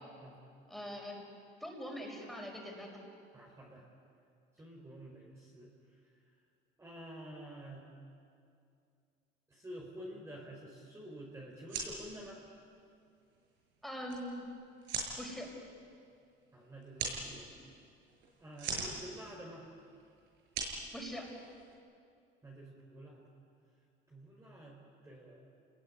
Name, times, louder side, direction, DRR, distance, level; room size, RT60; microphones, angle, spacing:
voice 1, 0.7-1.2 1.6-3.0 13.8-14.5 15.2-15.5 20.9-21.3, equal, ahead, 0 dB, 5.7 m, -42 dB
voice 2, 3.3-3.8 4.6-5.7 6.8-7.9 9.5-12.4 16.5-17.5 18.4-19.7 22.4-23.2 24.1-25.5, right 1 dB, 15° right, -2 dB, 4.3 m, -49 dB
sound 1, 11.5-21.7, right 4 dB, 70° right, 7.1 m, -43 dB
30.0 x 21.0 x 9.6 m, 2.4 s
cardioid pair, 140°, 20 cm